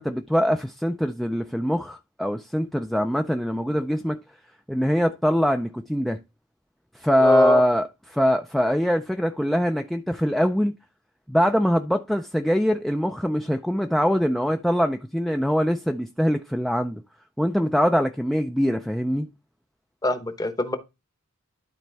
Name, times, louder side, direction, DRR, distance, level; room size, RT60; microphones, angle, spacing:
voice 1, 0.0-4.2 4.7-6.2 6.9-10.7 11.3-17.0 17.4-19.3, equal, ahead, 0.3 m, -23 dB
voice 2, 7.2-7.6 20.0-20.8, left 1 dB, 15° left, 0.9 m, -24 dB
12.0 x 4.2 x 3.4 m
head